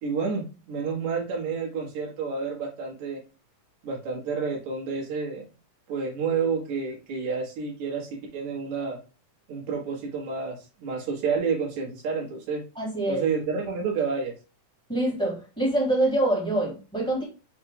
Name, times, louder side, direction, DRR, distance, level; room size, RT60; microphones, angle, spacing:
voice 1, 0.0-3.2 3.8-5.5 5.9-9.0 9.5-12.6 13.1-14.3, right 5 dB, 65° right, -3 dB, 2.7 m, -29 dB
voice 2, 12.7-13.2 14.9-17.2, right 1 dB, ahead, -5 dB, 1.6 m, -25 dB
5.7 x 2.6 x 3.6 m, 0.32 s
omnidirectional pair, 3.6 m